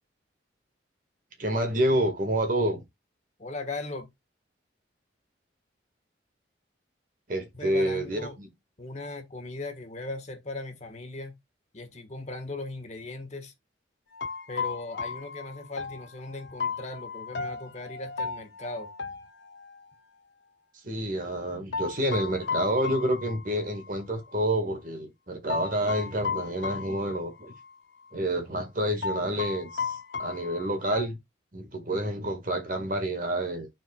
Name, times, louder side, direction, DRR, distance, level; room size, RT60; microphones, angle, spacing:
voice 1, 1.4-2.8 7.3-8.5 20.8-27.5 28.1-31.2 31.5-33.7, right 1 dB, 45° right, 1.7 m, -28 dB
voice 2, 3.4-4.1 7.5-8.4 8.8-11.3 11.7-13.5 14.5-18.9, left 2 dB, 35° left, 1.4 m, -38 dB
sound 1, 14.1-19.9 21.7-24.0 24.3-24.4 25.5-27.8 28.0-28.2 29.0-31.0, left 5 dB, 65° left, 0.7 m, -35 dB
12.5 x 4.5 x 2.3 m
head